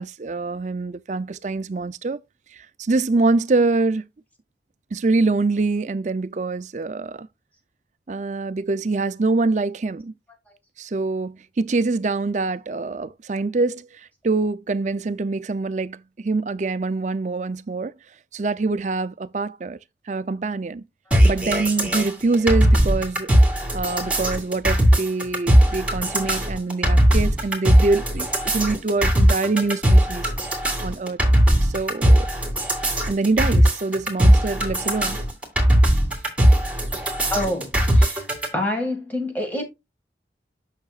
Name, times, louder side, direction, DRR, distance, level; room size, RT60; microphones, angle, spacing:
voice 1, 0.0-2.2 2.5-4.0 4.9-7.3 8.1-10.1 10.8-17.9 18.3-19.8 20.1-20.8 21.2-23.3 23.7-30.3 30.8-31.2 31.6-32.3 33.1-35.2, right 3 dB, 40° right, 0.5 m, -24 dB
sound 1, 21.1-38.5, equal, 5° right, 2.5 m, -18 dB
voice 2, 37.3-38.3 38.5-39.6, left 1 dB, 10° left, 2.1 m, -27 dB
8.5 x 6.5 x 2.4 m
head